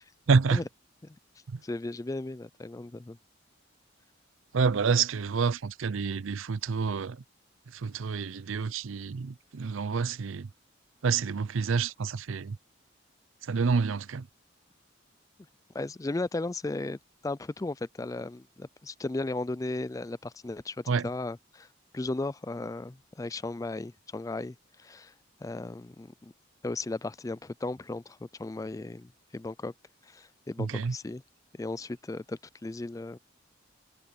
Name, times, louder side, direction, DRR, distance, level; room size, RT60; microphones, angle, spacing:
voice 1, 0.3-0.6 1.5-1.6 4.5-7.2 7.7-10.5 11.0-12.6 13.4-14.3 20.9-21.1 30.6-31.0, right 5 dB, 85° right, 0.5 m, -28 dB
voice 2, 1.6-3.2 15.7-21.7 21.9-25.1 25.4-26.3 26.6-29.7 30.0-31.2 31.6-33.2, left 2 dB, 15° left, 0.3 m, -36 dB
head